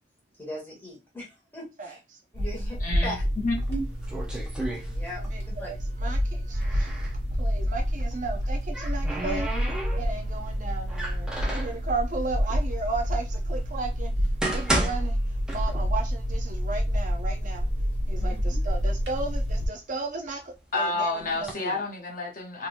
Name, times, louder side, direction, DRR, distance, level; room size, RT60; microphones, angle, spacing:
voice 1, 0.4-2.0 2.3-3.2 4.9-5.7 18.2-18.6, left 1 dB, 10° left, 1.7 m, -39 dB
voice 2, 1.8-2.2 5.2-7.1 7.4-9.5 9.9-14.1 14.5-17.7 18.1-21.8, right 3 dB, 45° right, 0.6 m, -35 dB
Inside Freezer, 2.3-19.7, equal, 65° right, 1.3 m, -28 dB
voice 3, 2.8-3.1 3.4-3.9 20.7-22.7, left 2 dB, 45° left, 0.8 m, -29 dB
sound 1, 3.6-5.5 5.7-7.2 8.3-10.3 10.9-11.8 12.6-12.7 13.3-13.4 14.1-16.1 16.4-16.5 17.2-17.3 17.7-18.3 18.9-20.5 21.2-21.5, right 1 dB, 5° right, 0.7 m, -33 dB
3.6 x 2.9 x 2.5 m
head